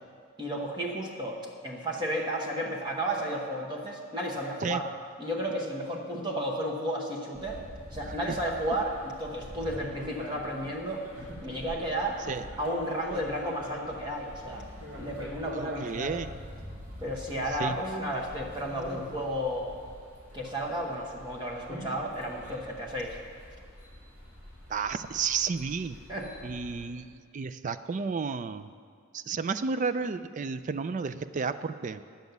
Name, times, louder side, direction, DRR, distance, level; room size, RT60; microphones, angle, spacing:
voice 1, 0.4-4.9 5.2-7.6 7.9-11.0 11.4-12.2 12.6-14.7 15.0-16.2 17.0-19.7 20.3-23.2 26.1-26.5, right 1 dB, 20° right, -1 dB, 1.1 m, -33 dB
sound 1, 7.3-26.9, equal, 85° right, 3.3 m, -44 dB
voice 2, 8.0-8.4 12.3-12.5 15.5-16.4 17.5-17.8 24.7-26.0 26.4-28.7 29.1-32.0, right 5 dB, 35° right, 12 dB, 0.3 m, -32 dB
10.5 x 7.3 x 8.0 m, 2.1 s
head